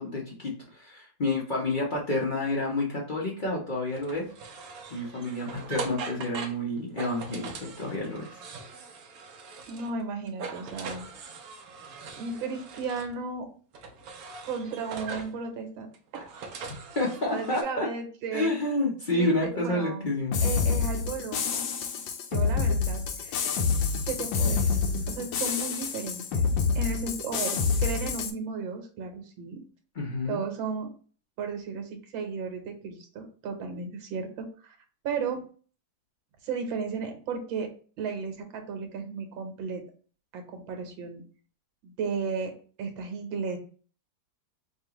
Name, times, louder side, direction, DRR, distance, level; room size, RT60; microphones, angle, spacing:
voice 1, 0.0-4.3 4.9-8.4 16.9-17.9 18.3-20.4 29.9-30.4, left 2 dB, 60° left, -3 dB, 0.5 m, -29 dB
sound 1, 4.0-10.0 10.3-13.1 13.7-15.4 15.9-17.6, right 5 dB, 65° right, 0.9 m, -41 dB
voice 2, 9.7-11.1 12.2-13.5 14.4-15.9 17.3-18.5 19.1-19.3 19.6-20.1 20.4-21.7 22.3-23.6 24.1-26.4 26.7-29.6 30.3-30.9 31.4-34.8 35.0-35.4 36.4-37.7 38.0-39.8 40.3-41.2 41.8-42.5 42.8-43.6, right 5 dB, 85° right, 4 dB, 1.7 m, -34 dB
sound 2, 20.3-28.3, left 5 dB, 80° left, 1.3 m, -27 dB
5.2 x 2.5 x 2.9 m, 0.41 s
omnidirectional pair, 2.1 m